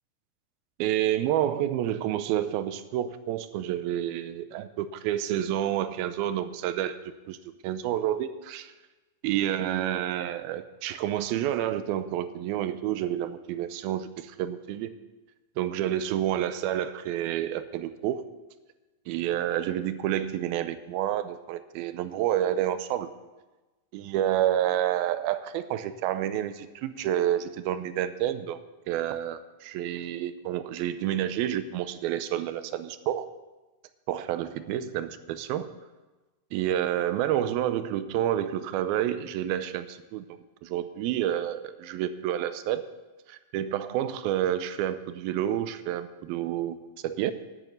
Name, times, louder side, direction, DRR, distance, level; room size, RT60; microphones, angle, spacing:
voice 1, 0.8-7.0 7.3-7.4 7.6-8.7 9.2-14.9 15.6-18.2 19.1-23.1 23.9-28.6 28.9-33.3 34.1-35.7 36.5-40.3 40.6-42.8 43.3-46.8 47.0-47.3, right 11 dB, 85° right, 12 dB, 2.5 m, -29 dB
11.0 x 8.2 x 8.1 m, 1.2 s
omnidirectional pair, 4.3 m